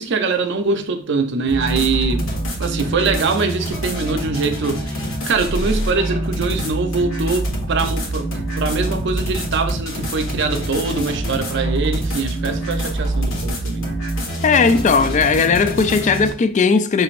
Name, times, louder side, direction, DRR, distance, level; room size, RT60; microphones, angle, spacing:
voice 1, 0.0-2.3 2.6-8.3 8.6-13.9, right 4 dB, 60° right, 0.6 m, -23 dB
sound 1, 1.5-16.3, right 1 dB, 75° left, 1.3 m, -25 dB
voice 2, 14.4-17.0, left 5 dB, 35° left, 0.3 m, -16 dB
5.8 x 3.2 x 2.5 m
head